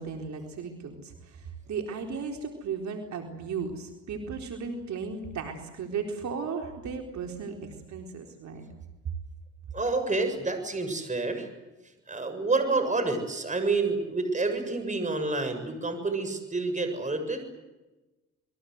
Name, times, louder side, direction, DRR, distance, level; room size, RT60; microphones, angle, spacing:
voice 1, 0.0-8.6, right 5 dB, 65° right, 3 dB, 4.2 m, -36 dB
voice 2, 9.7-11.5 12.1-17.4, right 3 dB, 25° right, 7 dB, 7.3 m, -28 dB
28.5 x 22.0 x 8.1 m, 1.1 s
cardioid pair, 90°, 30 cm